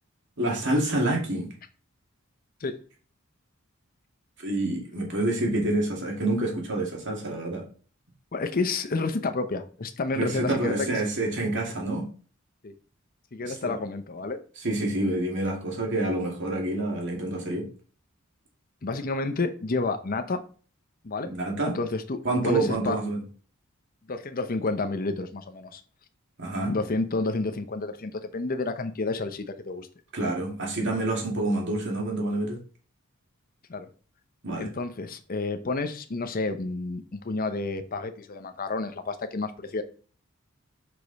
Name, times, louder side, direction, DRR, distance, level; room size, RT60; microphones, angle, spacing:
voice 1, 0.4-1.5 4.4-7.6 10.1-12.1 13.4-13.8 14.6-17.7 21.3-21.8 22.2-23.2 26.4-26.8 30.1-32.6 34.4-34.7, right 2 dB, 60° right, -1 dB, 2.3 m, -27 dB
voice 2, 8.3-11.0 12.6-12.7 13.3-14.4 18.8-20.4 21.0-21.3 21.7-23.0 24.1-25.8 26.7-29.9 33.7-33.9 34.6-39.8, left 3 dB, 45° left, 8 dB, 0.7 m, -30 dB
5.9 x 5.0 x 4.1 m, 0.40 s
head